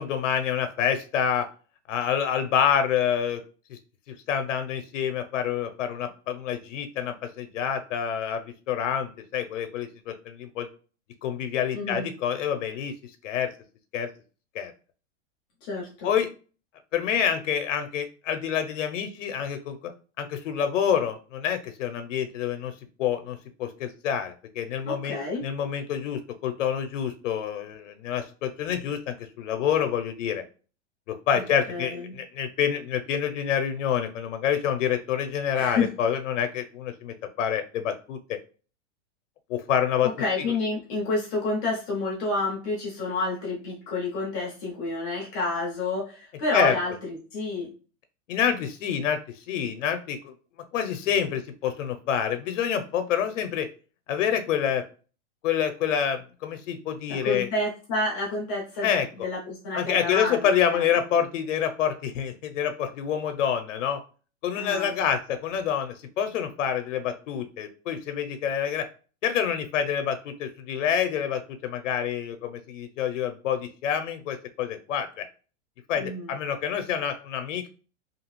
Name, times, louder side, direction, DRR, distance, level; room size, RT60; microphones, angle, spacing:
voice 1, 0.0-1.5 1.9-3.4 3.7-3.8 4.1-10.7 11.2-12.9 13.2-13.5 13.9-14.1 14.5-14.7 16.0-16.3 16.9-19.8 20.2-22.7 23.0-30.4 31.1-38.2 39.5-40.1 46.5-46.7 48.3-49.2 49.5-50.3 50.7-53.7 54.1-54.8 55.4-57.5 58.8-59.1 59.7-64.0 64.4-68.9 69.2-75.2 75.9-77.7, left 8 dB, 90° left, 8 dB, 0.6 m, -27 dB
voice 2, 11.7-12.1 15.6-16.1 24.8-25.4 31.3-32.2 35.5-35.9 40.0-47.7 57.1-60.9 64.6-64.9 76.0-76.3, left 2 dB, 20° left, -2 dB, 0.4 m, -29 dB
2.7 x 2.4 x 3.0 m, 0.37 s
supercardioid pair, 160°, 36 cm